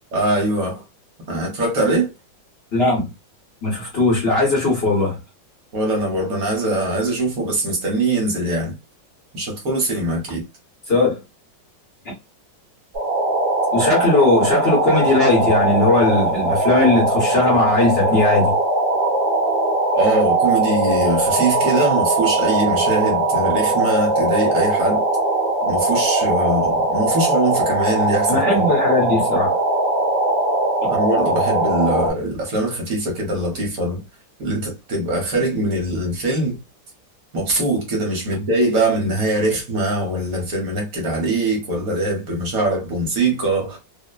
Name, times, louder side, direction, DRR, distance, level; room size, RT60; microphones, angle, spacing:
voice 1, 0.1-0.8 1.3-2.1 5.7-8.7 9.3-10.4 19.9-25.0 25.6-28.7 30.9-34.0 34.4-36.6 37.3-43.8, right 2 dB, 60° right, 1.2 m, -22 dB
voice 2, 2.7-3.1 3.6-5.2 10.9-11.2 13.7-18.5 28.3-29.6, left 2 dB, 45° left, 0.9 m, -18 dB
sound 1, 12.9-32.1, right 2 dB, 40° right, 1.0 m, -20 dB
3.0 x 2.1 x 2.2 m
omnidirectional pair, 2.0 m